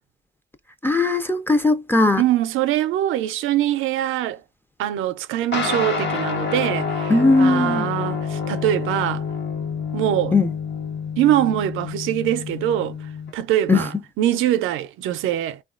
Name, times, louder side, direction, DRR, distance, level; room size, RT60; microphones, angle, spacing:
voice 1, 0.8-2.2 7.1-7.9 10.3-10.5 13.7-13.8, left 2 dB, 10° left, 0.4 m, -18 dB
voice 2, 2.2-4.4 4.8-9.2 9.9-10.3 11.2-13.0 13.3-15.6, right 12 dB, 85° right, 0.4 m, -23 dB
sound 1, 5.5-13.3, left 5 dB, 60° left, 0.8 m, -28 dB
3.0 x 2.3 x 2.4 m
cardioid pair, 90°, 20 cm